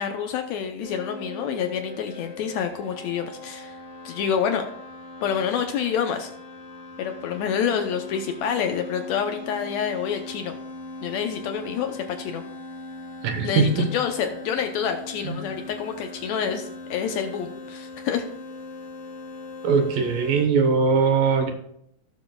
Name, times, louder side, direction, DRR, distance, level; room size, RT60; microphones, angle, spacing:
voice 1, 0.0-3.8 4.1-4.6 5.2-6.3 7.0-10.6 11.0-12.4 13.4-18.2, left 7 dB, 80° left, 6 dB, 1.6 m, -27 dB
sound 1, 0.8-20.4, left 2 dB, 50° left, 1.4 m, -40 dB
voice 2, 13.2-13.9 15.2-15.4 19.6-21.5, right 5 dB, 80° right, 4 dB, 2.7 m, -21 dB
16.5 x 6.8 x 2.3 m, 0.71 s
omnidirectional pair, 3.8 m